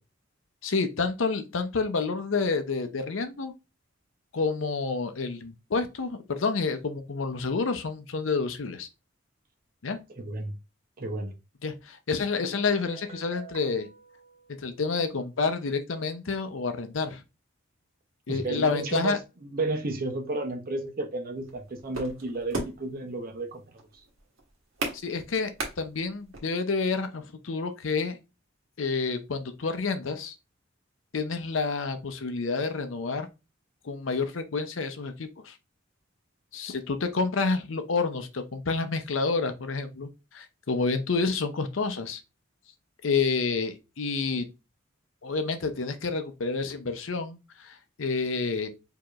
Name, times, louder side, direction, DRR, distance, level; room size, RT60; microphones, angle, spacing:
voice 1, 0.6-3.5 4.3-8.9 9.8-10.0 11.6-13.9 14.6-17.2 18.3-19.2 24.9-28.2 28.8-30.3 31.1-33.3 33.8-35.6 36.5-42.2 43.0-44.5 45.2-48.7, left 4 dB, 70° left, 0.6 m, -29 dB
voice 2, 10.2-10.5 11.0-11.3 18.3-23.6, right 2 dB, 45° right, 0.8 m, -32 dB
Guitar, 12.3-15.1, right 5 dB, 30° right, 1.3 m, -49 dB
sound 1, 21.4-26.4, right 2 dB, 90° right, 1.2 m, -36 dB
4.8 x 2.8 x 2.4 m
head